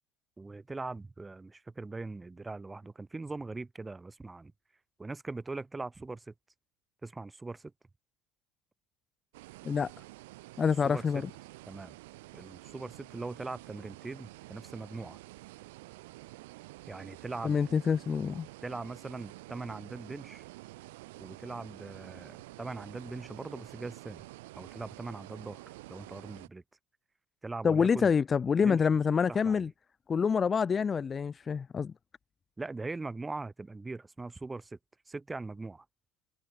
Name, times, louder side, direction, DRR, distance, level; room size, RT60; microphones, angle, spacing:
voice 1, 0.4-4.5 5.0-6.3 7.0-7.7 10.8-11.2 11.7-12.0 12.3-15.2 16.9-17.6 18.6-20.4 21.2-24.3 24.5-26.6 27.4-28.1 28.6-28.8 29.3-29.7 32.6-34.8 35.1-35.8, right 3 dB, 15° right, 1.5 m, -41 dB
sound 1, 9.3-26.5, right 20 dB, 90° right, 1.8 m, -49 dB
voice 2, 10.6-11.3 17.4-18.5 27.6-29.7 30.1-31.9, left 6 dB, 30° left, 0.6 m, -27 dB
supercardioid pair, 110°, 0 cm